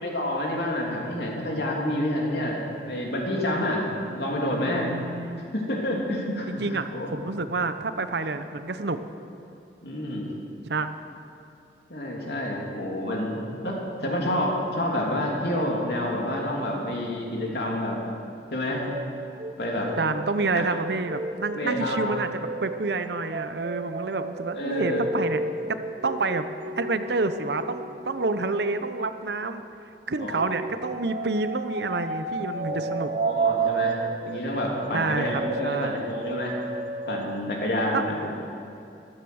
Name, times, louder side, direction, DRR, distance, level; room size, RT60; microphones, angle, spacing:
voice 1, 0.0-4.9 5.5-7.1 9.8-10.3 11.9-18.0 18.5-18.9 19.6-19.9 21.5-22.0 24.6-25.0 30.2-30.4 32.6-36.5 37.1-38.5, left 1 dB, 65° left, -2 dB, 3.1 m, -28 dB
voice 2, 4.6-5.4 6.5-9.0 10.6-10.9 20.0-25.4 25.7-29.6 30.1-33.1 34.9-35.3 35.6-36.0 37.9-38.0, right 3 dB, 75° right, 10 dB, 0.8 m, -28 dB
sound 1, 18.7-29.7 30.4-37.5, right 4 dB, 40° right, 0.7 m, -33 dB
15.0 x 13.0 x 6.4 m, 2.7 s
head